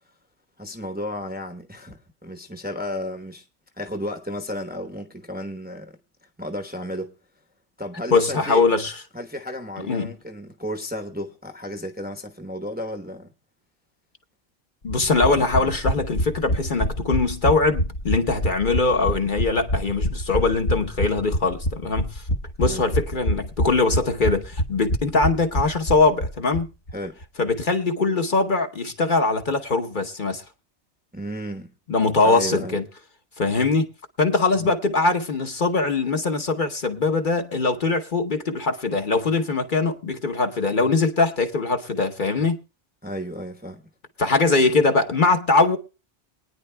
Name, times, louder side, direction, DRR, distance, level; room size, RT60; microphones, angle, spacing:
voice 1, 0.6-3.5 3.7-6.0 6.4-7.1 7.8-8.6 9.1-13.3 22.6-22.8 26.9-27.2 31.1-31.7 32.2-32.8 34.6-34.7 43.0-43.8, equal, 10° right, 0.8 m, -33 dB
voice 2, 8.1-8.9 9.9-10.1 14.8-22.2 22.6-26.7 27.4-30.4 31.9-32.8 33.4-33.9 34.2-42.6 44.2-45.8, left 3 dB, 45° left, 1.1 m, -22 dB
sound 1, 14.9-26.6 26.9-27.0 27.2-27.3, equal, 70° left, 1.7 m, -26 dB
23.5 x 9.7 x 2.2 m
omnidirectional pair, 1.2 m